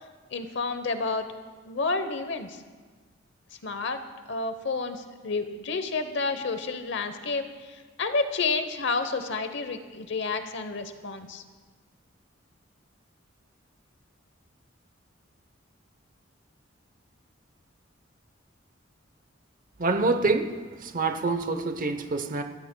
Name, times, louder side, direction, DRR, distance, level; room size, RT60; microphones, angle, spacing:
voice 1, 0.3-1.3 1.7-2.6 3.6-4.0 4.3-11.4, left 3 dB, 65° left, 9 dB, 0.9 m, -30 dB
voice 2, 19.8-22.4, right 3 dB, 45° right, 7 dB, 0.8 m, -26 dB
26.0 x 14.0 x 2.2 m, 1.4 s
head